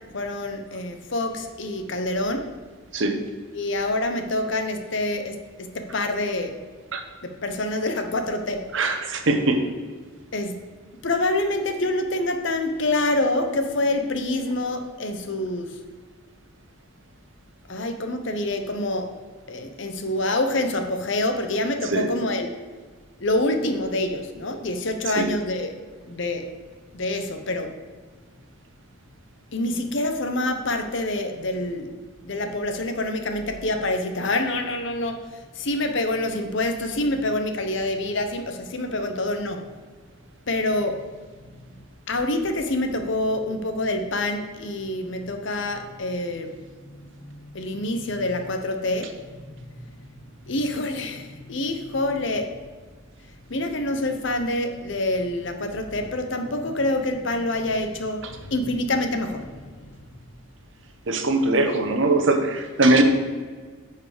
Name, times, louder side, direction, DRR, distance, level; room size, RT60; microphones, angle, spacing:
voice 1, 0.1-2.5 3.5-5.4 5.7-6.6 7.2-8.7 10.3-10.6 11.0-15.8 17.7-19.1 19.5-22.5 23.2-25.7 26.1-26.5 26.9-27.7 29.5-32.0 32.2-39.6 40.5-41.1 42.1-46.6 46.9-49.4 49.7-49.8 50.5-52.5 53.5-59.9, left 2 dB, 60° left, 6 dB, 0.8 m, -26 dB
voice 2, 8.7-9.6 21.9-22.1 25.2-25.3 61.1-63.0, right 2 dB, 65° right, 5 dB, 1.0 m, -21 dB
9.6 x 4.7 x 5.0 m, 1.5 s
head